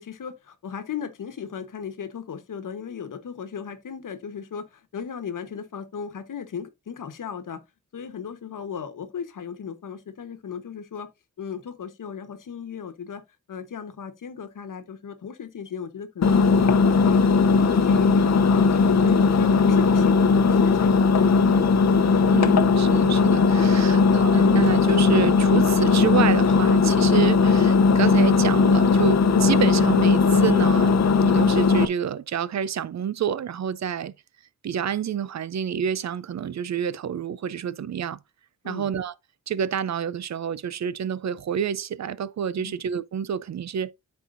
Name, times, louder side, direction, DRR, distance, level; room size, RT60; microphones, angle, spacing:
voice 1, 0.0-7.6 7.9-11.1 11.4-13.2 13.5-17.2 17.5-21.4 38.6-38.9 42.6-42.8, left 7 dB, 80° left, 1.2 m, -36 dB
Engine, 16.2-31.9, left 4 dB, 60° left, 0.7 m, -18 dB
voice 2, 22.3-34.1 34.6-38.2 38.6-39.1 39.5-43.9, right 8 dB, 60° right, 0.5 m, -28 dB
13.0 x 4.3 x 2.5 m
wide cardioid pair, 140°, 31 cm